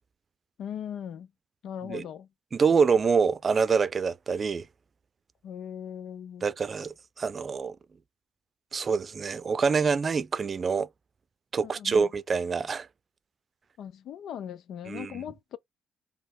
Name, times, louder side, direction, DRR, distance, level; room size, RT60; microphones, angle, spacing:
voice 1, 0.6-1.3 1.6-2.3 5.4-6.5 11.6-12.1 13.8-15.6, left 9 dB, 75° left, 0.7 m, -39 dB
voice 2, 2.5-4.7 6.4-7.8 8.7-10.9 11.5-12.9 14.9-15.1, right 5 dB, 40° right, 0.6 m, -26 dB
4.2 x 3.4 x 3.7 m
cardioid pair, 90°, 0 cm